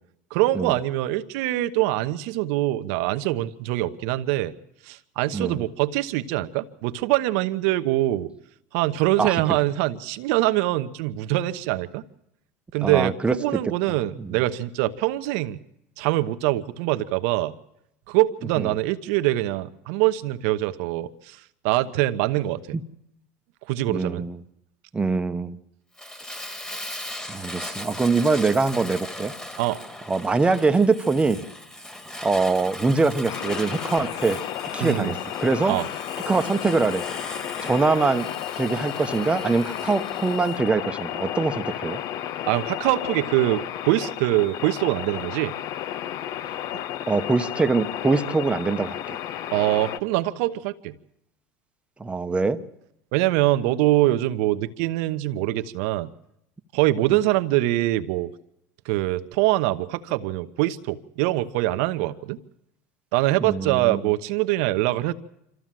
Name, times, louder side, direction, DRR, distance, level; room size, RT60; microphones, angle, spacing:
voice 1, 0.3-4.5 4.8-8.3 8.7-12.0 12.7-15.6 16.0-17.5 18.1-21.4 21.6-22.8 23.7-24.2 29.6-29.8 34.8-35.1 35.7-35.9 42.5-45.5 46.7-46.8 49.5-50.9 53.1-56.1 56.7-58.3 58.8-62.4 63.1-65.1, right 16 dB, 70° right, 11 dB, 1.0 m, -24 dB
voice 2, 12.8-13.4 14.2-14.4 18.6-18.8 23.9-24.4 24.9-25.6 27.3-29.3 30.1-31.4 32.2-34.4 34.7-35.8 36.3-37.0 37.6-42.0 47.1-49.2 52.0-52.6 63.4-64.1, right 3 dB, 15° right, 9 dB, 1.0 m, -23 dB
Fire, 26.0-40.6, left 1 dB, 10° left, 2.0 m, -38 dB
sound 1, 33.3-50.0, left 11 dB, 50° left, 0.7 m, -32 dB
25.5 x 14.5 x 7.6 m, 0.82 s
supercardioid pair, 110°, 8 cm